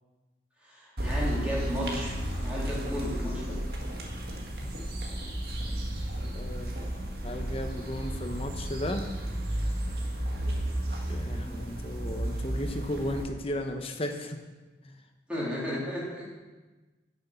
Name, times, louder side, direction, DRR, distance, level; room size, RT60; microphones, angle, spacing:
voice 1, 0.6-2.2 2.4-3.6 15.3-16.3, left 1 dB, 5° right, -7 dB, 3.5 m, -33 dB
sound 1, 1.0-13.2, right 1 dB, 60° right, 1.8 m, -33 dB
voice 2, 6.3-6.7 7.2-9.1 11.1-14.4 14.8-15.0, left 1 dB, 30° left, 5 dB, 0.9 m, -35 dB
10.5 x 6.7 x 6.9 m, 1.2 s
head